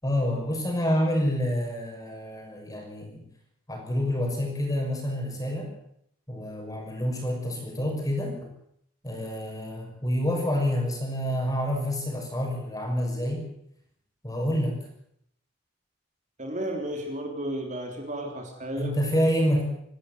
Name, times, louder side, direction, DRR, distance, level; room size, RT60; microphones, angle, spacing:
voice 1, 0.0-3.2 3.7-5.7 6.3-8.5 9.0-13.4 14.2-14.8 18.8-19.6, equal, 15° left, 2 dB, 6.3 m, -28 dB
voice 2, 16.4-18.9, right 1 dB, 35° right, 3 dB, 3.4 m, -33 dB
27.5 x 13.0 x 8.1 m, 0.73 s
head